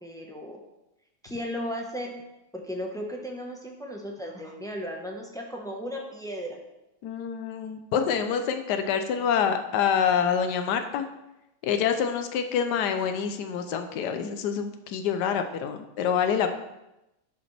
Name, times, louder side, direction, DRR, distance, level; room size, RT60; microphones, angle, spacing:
voice 1, 0.0-0.6 1.2-2.2 2.5-6.6, equal, 5° left, 0 dB, 0.8 m, -35 dB
voice 2, 7.0-11.1 11.6-16.6, left 7 dB, 85° left, 7 dB, 1.3 m, -26 dB
11.5 x 5.1 x 3.3 m, 0.93 s
omnidirectional pair, 1.8 m